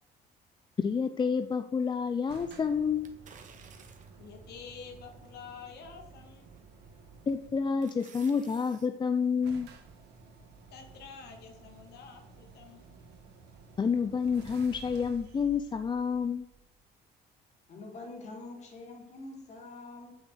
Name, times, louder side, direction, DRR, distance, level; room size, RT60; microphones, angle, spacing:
voice 1, 0.8-3.1 7.3-9.7 13.8-16.4, left 6 dB, 25° left, 9 dB, 0.6 m, -29 dB
sound 1, 2.3-7.8 8.8-8.9 9.1-9.2 9.4-16.9, right 4 dB, 80° right, 2.0 m, -53 dB
sound 2, 3.0-4.3 4.9-5.0 6.6-6.9 7.3-8.9 9.2-9.3, right 6 dB, 50° right, 1.9 m, -55 dB
voice 2, 4.2-6.5 10.7-12.9, left 6 dB, 75° left, 3 dB, 2.4 m, -48 dB
voice 3, 17.7-20.1, left 2 dB, 45° left, 1 dB, 3.8 m, -45 dB
8.8 x 7.3 x 8.0 m, 0.83 s
cardioid pair, 110°, 17 cm